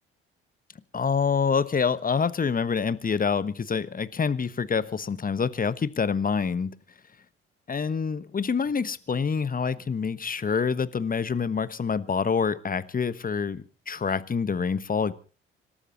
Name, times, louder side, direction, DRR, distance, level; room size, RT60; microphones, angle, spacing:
voice 1, 0.9-6.8 7.7-15.1, left 6 dB, 30° left, 1.2 m, -26 dB
26.0 x 13.0 x 4.1 m
figure-of-eight pair, 45°, 29 cm